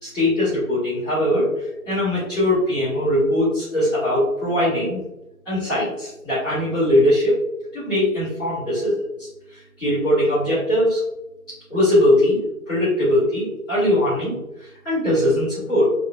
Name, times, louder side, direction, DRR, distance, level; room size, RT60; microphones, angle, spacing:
voice 1, 0.0-5.0 5.4-7.4 7.7-11.0 11.7-12.4 12.7-15.9, left 1 dB, 5° left, -19 dB, 0.8 m, -21 dB
2.9 x 2.9 x 2.5 m, 0.93 s
figure-of-eight pair, 160°, 43 cm